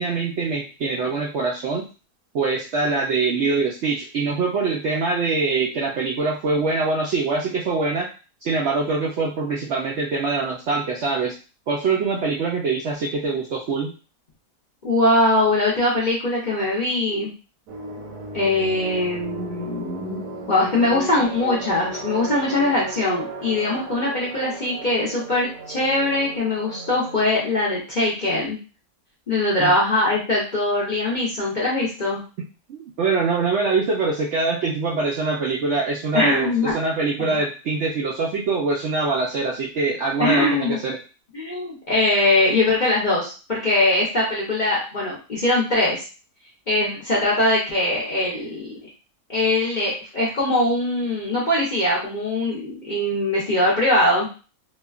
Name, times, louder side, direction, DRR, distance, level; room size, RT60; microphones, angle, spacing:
voice 1, 0.0-1.9 2.3-8.1 8.4-11.3 11.7-13.9 29.6-29.7 32.7-41.0, right 4 dB, 70° right, -3 dB, 0.7 m, -24 dB
voice 2, 14.8-17.3 18.3-20.2 20.5-28.6 29.3-32.2 36.1-36.7 37.2-37.4 40.2-40.8 41.3-46.0 46.7-48.9 49.3-54.3, left 2 dB, 45° left, -6 dB, 0.6 m, -21 dB
sound 1, 17.7-27.5, right 2 dB, 85° right, 1.3 m, -35 dB
3.1 x 2.3 x 2.3 m, 0.34 s
omnidirectional pair, 1.6 m